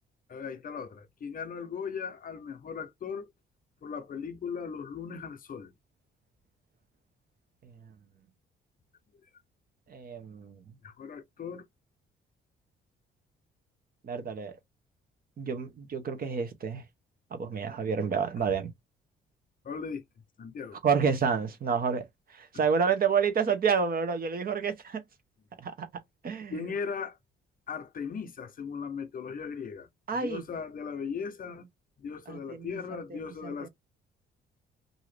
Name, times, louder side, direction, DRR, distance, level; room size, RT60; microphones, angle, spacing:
voice 1, 0.3-3.3 3.8-5.7 10.8-11.6 19.6-20.0 20.4-20.8 22.5-22.6 26.5-27.2 27.7-31.7 32.0-33.7, left 6 dB, 45° left, 0.6 m, -38 dB
voice 2, 9.9-10.6 14.0-14.5 15.4-16.8 17.3-18.7 20.8-22.0 22.3-25.0 25.6-25.9 26.2-26.7 30.1-30.4 32.3-32.8 33.1-33.5, right 6 dB, 50° right, 0.8 m, -29 dB
2.7 x 2.5 x 3.2 m
cardioid pair, 90°, 20 cm